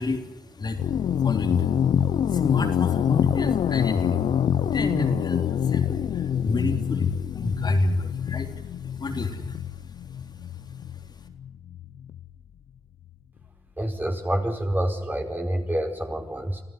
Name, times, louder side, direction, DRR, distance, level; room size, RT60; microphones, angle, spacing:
voice 1, 0.0-11.3, left 2 dB, 50° left, 3 dB, 3.5 m, -30 dB
sound 1, 0.8-12.3, left 9 dB, 85° left, 0.9 m, -26 dB
voice 2, 13.8-16.6, right 1 dB, 20° right, 3 dB, 5.0 m, -27 dB
25.5 x 14.5 x 8.2 m, 1.1 s
cardioid pair, 55°, 9 cm